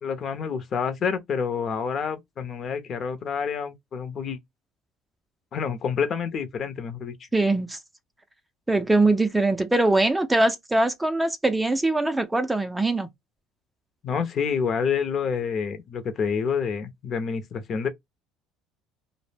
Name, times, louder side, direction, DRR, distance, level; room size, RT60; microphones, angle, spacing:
voice 1, 0.0-4.4 5.5-7.3 14.0-17.9, left 6 dB, 45° left, 0.6 m, -28 dB
voice 2, 7.3-7.8 8.7-13.1, right 2 dB, 10° right, 0.4 m, -22 dB
2.0 x 2.0 x 3.2 m
supercardioid pair, 105°, 0 cm